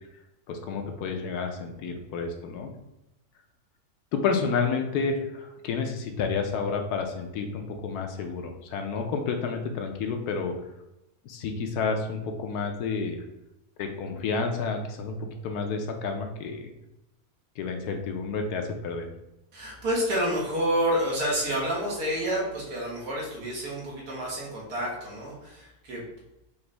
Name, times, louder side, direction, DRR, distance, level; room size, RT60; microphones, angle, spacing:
voice 1, 0.5-2.7 4.1-10.5 11.2-13.2 13.8-16.7 17.6-19.1, left 5 dB, 85° left, 5 dB, 1.2 m, -30 dB
voice 2, 19.5-26.0, equal, 90° right, -4 dB, 1.9 m, -29 dB
5.1 x 2.6 x 3.2 m, 0.90 s
omnidirectional pair, 1.6 m